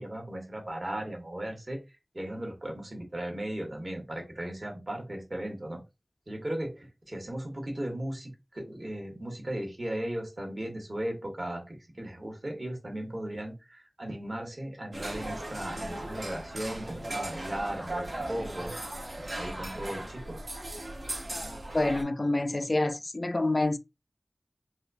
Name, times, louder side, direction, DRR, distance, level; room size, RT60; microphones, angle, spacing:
voice 1, 0.0-1.8 2.1-5.8 6.3-18.7 19.2-20.4, right 1 dB, 50° right, 1.3 m, -37 dB
sound 1, 14.9-22.0, right 1 dB, 80° right, 1.1 m, -37 dB
voice 2, 21.7-23.8, left 2 dB, 50° left, 0.3 m, -27 dB
4.1 x 2.3 x 2.5 m
wide cardioid pair, 55°, 0 cm